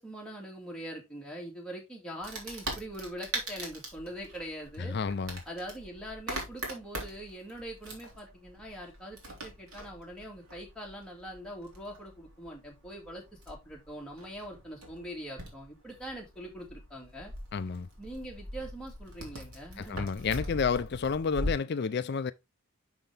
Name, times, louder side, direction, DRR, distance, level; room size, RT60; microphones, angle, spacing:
voice 1, 0.0-5.0 5.5-17.3 18.0-20.1, right 1 dB, 5° left, 2.2 m, -43 dB
Wood, 2.2-21.5, right 1 dB, 85° right, 2.9 m, -42 dB
voice 2, 4.9-5.4 17.5-17.9 19.8-22.3, left 5 dB, 50° left, 0.4 m, -30 dB
6.6 x 5.9 x 3.4 m
head